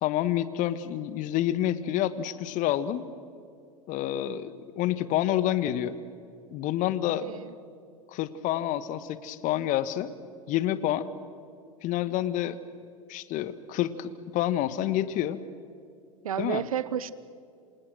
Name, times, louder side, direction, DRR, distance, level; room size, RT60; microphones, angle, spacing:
voice 1, 0.0-3.0 3.9-5.9 6.5-7.2 8.1-10.1 10.5-11.1 11.8-12.6 13.1-15.4 16.4-16.6, left 12 dB, 45° left, 14 dB, 1.5 m, -28 dB
voice 2, 7.2-7.5 16.2-17.1, right 9 dB, 75° right, 18 dB, 0.9 m, -31 dB
27.5 x 27.5 x 6.3 m, 2.5 s
figure-of-eight pair, 80°, 18 cm